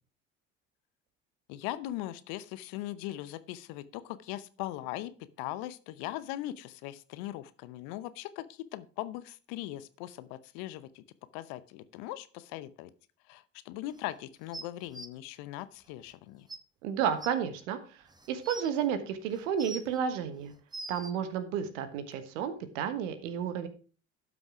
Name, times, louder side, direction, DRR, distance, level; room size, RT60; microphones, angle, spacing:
voice 1, 1.5-11.0 11.3-12.9 13.3-16.5, left 15 dB, 70° left, 16 dB, 0.9 m, -40 dB
sound 1, 14.5-15.1 16.1-16.2 16.5-16.6 17.2-17.3 18.1-18.7 19.3-20.0 20.5-21.1 22.1-22.2, right 2 dB, 10° right, 1.1 m, -42 dB
voice 2, 16.8-17.8 18.3-20.5 20.9-23.7, right 8 dB, 80° right, 10 dB, 1.4 m, -31 dB
12.0 x 6.1 x 4.9 m, 0.38 s
hypercardioid pair, 60°, 38 cm